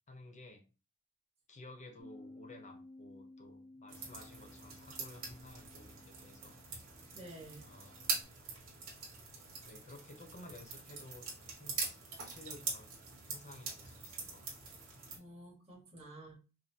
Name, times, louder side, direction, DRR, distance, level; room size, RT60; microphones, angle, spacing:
voice 1, 0.1-0.6 1.5-6.6 7.6-8.1 9.6-12.9 13.2-14.9, left 1 dB, 35° left, 4 dB, 0.7 m, -55 dB
Bass guitar, 2.0-8.2, left 2 dB, ahead, 0.9 m, -57 dB
sound 1, 3.9-15.2, right 4 dB, 70° right, 1.6 m, -44 dB
voice 2, 7.1-7.7 15.1-16.3, right 1 dB, 30° right, -4 dB, 1.3 m, -51 dB
5.1 x 2.0 x 2.7 m, 0.32 s
head